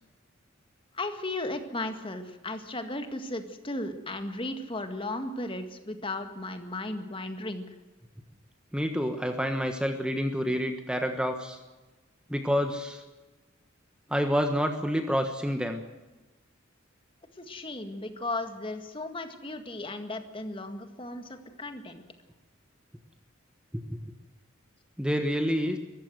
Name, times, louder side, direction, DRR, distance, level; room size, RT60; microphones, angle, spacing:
voice 1, 0.9-7.7 17.4-21.3 21.6-22.0, left 2 dB, 25° left, 8 dB, 1.9 m, -35 dB
voice 2, 8.7-11.6 12.3-13.0 14.1-15.8 23.7-23.8 25.0-25.8, equal, 5° right, 6 dB, 1.3 m, -28 dB
23.0 x 14.5 x 8.0 m, 1.2 s
head